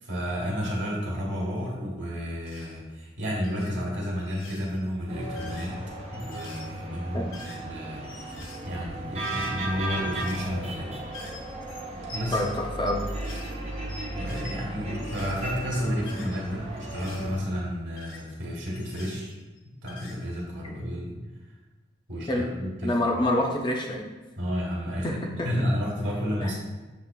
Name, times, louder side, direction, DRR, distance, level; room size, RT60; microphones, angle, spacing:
voice 1, 0.0-5.8 6.1-11.0 12.1-12.4 14.0-19.4 19.8-21.2 22.1-23.2 24.4-25.1 25.4-26.6, equal, 70° right, -3 dB, 1.2 m, -31 dB
sound 1, 2.4-2.8 3.3-3.8 4.2-4.8 5.2-7.7 8.0-9.7 10.0-10.7 11.1-14.6 14.9-17.4 18.0-19.6 19.9-20.4, left 3 dB, 85° left, 0.7 m, -46 dB
sound 2, 5.1-17.4, right 1 dB, 30° right, 0.6 m, -36 dB
voice 2, 12.3-13.0 22.3-22.5 22.8-24.1 25.0-25.5 26.4-26.5, left 1 dB, 25° left, 0 dB, 0.4 m, -27 dB
7.0 x 2.7 x 2.2 m, 1.2 s
head